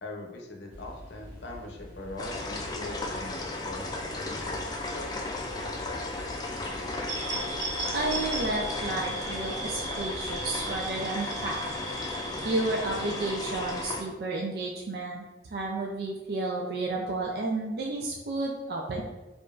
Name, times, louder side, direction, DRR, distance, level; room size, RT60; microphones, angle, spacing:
voice 1, 0.0-4.2 4.9-6.1, left 2 dB, 75° left, 1 dB, 0.6 m, -42 dB
sound 1, 0.7-10.8, equal, 5° right, 1.0 m, -47 dB
sound 2, 2.2-14.0, left 2 dB, 20° left, 0.3 m, -35 dB
sound 3, 7.1-13.9, right 2 dB, 40° right, 0.8 m, -37 dB
voice 2, 7.9-11.6 12.4-15.2 15.5-19.0, right 2 dB, 60° right, -1 dB, 0.4 m, -31 dB
4.8 x 2.4 x 2.4 m, 1.1 s
head